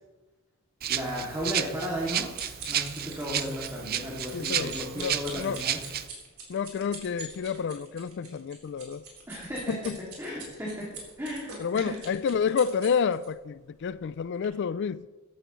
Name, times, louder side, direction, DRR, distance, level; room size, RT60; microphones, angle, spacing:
Rattle (instrument), 0.8-6.1, right 10 dB, 45° right, 0.5 m, -32 dB
voice 1, 0.9-2.3 2.7-5.8 9.3-12.0, equal, 10° right, 2.4 m, -35 dB
sound 1, 2.2-13.3 13.9-14.1 14.4-14.5, right 4 dB, 75° right, 4.0 m, -44 dB
voice 2, 4.3-5.6 6.5-9.0 9.7-10.0 11.6-15.1, left 6 dB, 55° left, 0.3 m, -29 dB
14.5 x 12.5 x 3.1 m
head